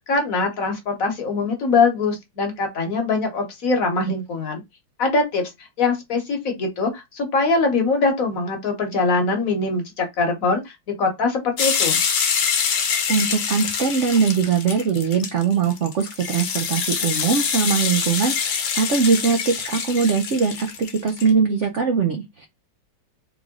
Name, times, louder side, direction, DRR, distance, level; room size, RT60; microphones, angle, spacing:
voice 1, 0.0-4.6 5.0-5.5 5.8-10.7 11.0-12.0, left 3 dB, 50° left, 1.4 m, -22 dB
sound 1, 11.6-21.3, left 6 dB, 65° left, 1.5 m, -25 dB
voice 2, 13.1-22.5, right 5 dB, 90° right, 0.6 m, -21 dB
3.8 x 3.2 x 3.6 m
omnidirectional pair, 2.1 m